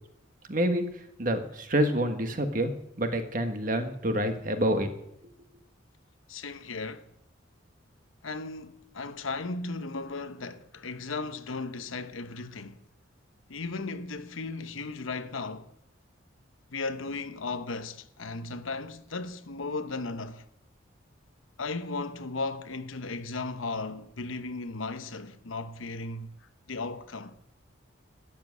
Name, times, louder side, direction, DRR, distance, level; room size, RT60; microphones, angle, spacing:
voice 1, 0.5-0.8 1.2-2.7 3.0-4.9, right 1 dB, 40° right, 1.4 m, -27 dB
voice 2, 6.3-7.1 8.2-12.8 13.5-15.7 16.7-20.4 21.6-26.3 26.7-27.4, left 3 dB, 85° left, 1.0 m, -36 dB
13.0 x 7.5 x 9.6 m
head